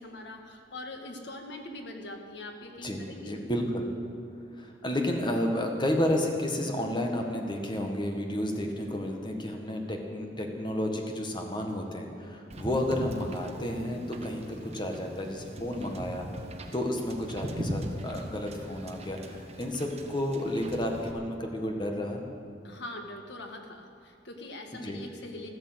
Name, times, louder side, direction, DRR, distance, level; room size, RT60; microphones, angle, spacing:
voice 1, 0.0-3.3 22.6-25.5, left 2 dB, 65° left, 3 dB, 1.7 m, -42 dB
voice 2, 2.8-3.9 4.5-16.3 16.7-22.2 24.8-25.0, left 1 dB, 25° left, 2 dB, 1.6 m, -31 dB
Wind / Boat Water vehicle, 12.5-21.1, equal, 35° right, 1.2 m, -40 dB
13.5 x 13.0 x 8.0 m, 2.4 s
head